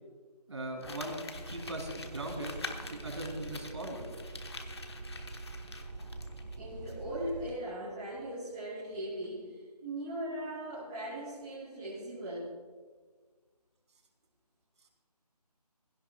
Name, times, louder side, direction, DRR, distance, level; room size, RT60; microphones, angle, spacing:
voice 1, 0.5-1.2 1.5-2.6 2.9-4.0, right 1 dB, 45° right, 2 dB, 3.1 m, -39 dB
Crumpling crinkling, 0.8-6.6 6.9-7.0, left 3 dB, 40° left, 1.2 m, -46 dB
sound 1, 1.3-7.6, right 2 dB, 80° right, 1.2 m, -45 dB
voice 2, 6.6-12.6, right 1 dB, 5° right, -11 dB, 0.7 m, -39 dB
17.5 x 16.5 x 2.4 m, 1.5 s
figure-of-eight pair, 170°, 21 cm